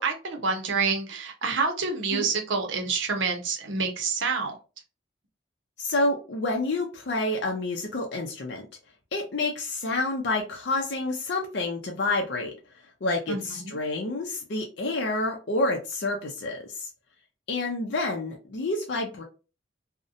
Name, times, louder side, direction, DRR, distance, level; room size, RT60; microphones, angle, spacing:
voice 1, 0.0-4.5 13.3-13.8, right 4 dB, 80° right, 0.6 m, -28 dB
voice 2, 5.8-8.6 9.1-12.5 13.0-16.9 17.5-19.2, left 2 dB, 60° left, 0.5 m, -28 dB
2.6 x 2.1 x 2.4 m
head